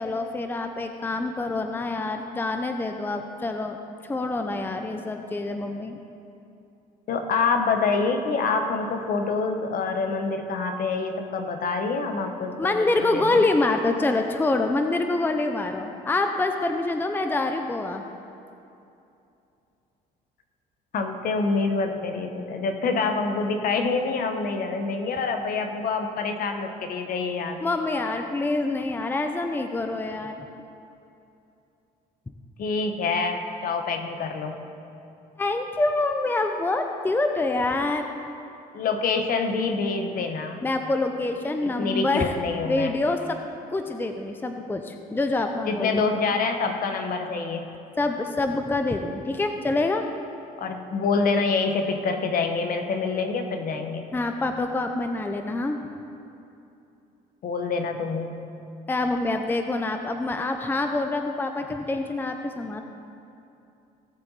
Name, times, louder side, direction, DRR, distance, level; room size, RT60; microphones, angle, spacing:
voice 1, 0.0-3.8 4.1-6.0 12.6-18.0 27.6-30.5 35.4-38.1 40.6-42.3 42.7-43.4 43.7-46.1 48.0-50.1 54.1-55.8 58.9-62.8, left 2 dB, 10° left, 5 dB, 0.6 m, -26 dB
voice 2, 7.1-13.4 20.9-27.6 32.6-34.6 38.7-40.6 41.6-42.9 45.7-47.7 50.6-54.1 57.4-58.4, left 4 dB, 55° left, 5 dB, 1.2 m, -26 dB
17.5 x 7.0 x 4.1 m, 2.7 s
cardioid pair, 110°, 17 cm